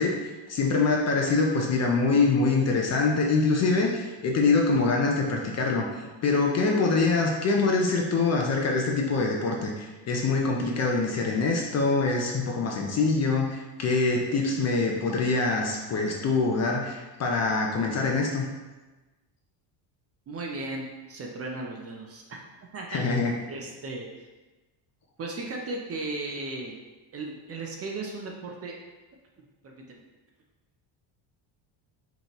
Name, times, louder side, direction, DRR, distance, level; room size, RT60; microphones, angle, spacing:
voice 1, 0.0-18.5 22.9-23.4, left 3 dB, 35° left, 1 dB, 0.4 m, -24 dB
voice 2, 20.3-22.4 22.7-23.0 23.5-24.1 25.2-26.8 27.1-28.7 29.6-30.0, right 2 dB, 30° right, 0 dB, 0.4 m, -36 dB
5.4 x 3.0 x 2.9 m, 1.2 s
cardioid pair, 155°, 48 cm